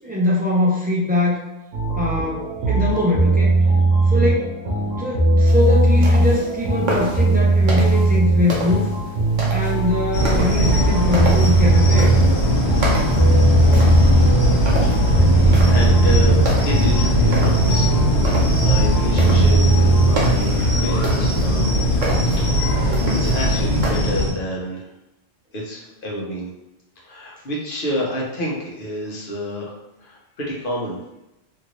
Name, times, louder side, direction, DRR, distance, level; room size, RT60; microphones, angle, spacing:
voice 1, 0.0-1.5 2.0-3.6 4.1-4.5 5.0-8.9 9.5-12.1, left 2 dB, 15° right, -6 dB, 0.4 m, -22 dB
sound 1, 1.7-20.1, right 2 dB, 85° right, 1.1 m, -19 dB
sound 2, 5.5-23.9, right 1 dB, 45° right, 0.8 m, -30 dB
sound 3, 10.1-24.3, equal, 85° left, 1.3 m, -19 dB
voice 2, 13.4-14.4 14.8-18.1 18.5-21.9 22.3-24.9 25.5-26.5 27.0-31.0, equal, 50° left, -4 dB, 1.0 m, -29 dB
2.9 x 2.6 x 3.0 m, 0.91 s
omnidirectional pair, 1.2 m